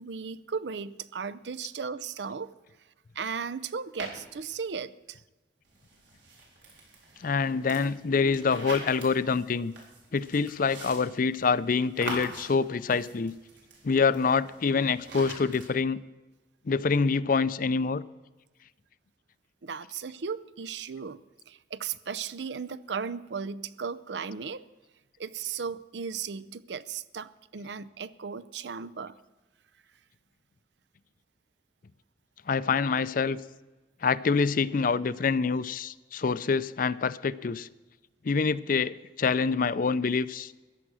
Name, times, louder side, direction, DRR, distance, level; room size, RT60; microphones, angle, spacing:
voice 1, 0.0-2.5 3.1-5.2 19.6-21.2 21.5-24.7 25.2-29.2, right 6 dB, 75° right, 17 dB, 0.6 m, -36 dB
sound 1, 4.0-4.6 5.6-15.7, right 2 dB, 90° right, 4.2 m, -44 dB
voice 2, 7.2-9.7 10.1-13.3 13.8-16.0 16.7-18.0 32.5-33.4 34.0-37.7 38.2-40.5, left 5 dB, 50° left, 17 dB, 0.5 m, -26 dB
14.5 x 10.5 x 6.2 m, 1.2 s
head